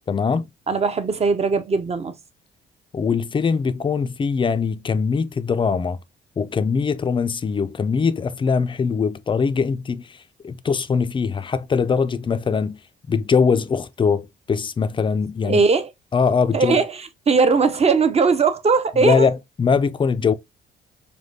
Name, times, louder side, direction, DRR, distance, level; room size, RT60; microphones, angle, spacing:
voice 1, 0.1-0.5 2.9-6.0 6.4-12.8 13.1-15.6 16.1-16.8 19.0-20.3, left 5 dB, 25° left, 0.4 m, -22 dB
voice 2, 0.7-2.2 15.4-15.9 16.5-19.3, right 4 dB, 30° right, 0.7 m, -19 dB
5.0 x 2.2 x 2.7 m
cardioid pair, 90°, 20 cm